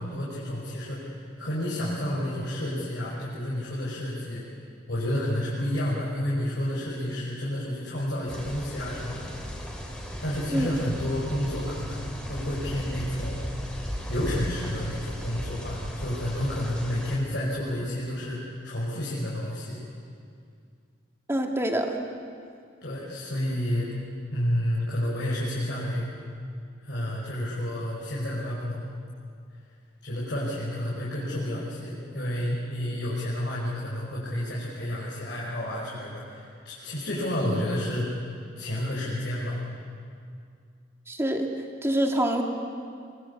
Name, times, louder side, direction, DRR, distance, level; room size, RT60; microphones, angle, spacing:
voice 1, 0.0-4.4 4.9-9.3 10.2-19.8 22.8-23.9 24.3-26.1 26.8-28.8 30.0-38.2 38.6-39.6, left 1 dB, 60° left, -6 dB, 5.6 m, -30 dB
sound 1, 8.3-17.2, equal, 5° left, 3.8 m, -36 dB
voice 2, 21.3-22.0 41.1-41.5 41.8-42.4, right 1 dB, 15° right, 2 dB, 2.2 m, -25 dB
25.5 x 23.5 x 8.5 m, 2.3 s
head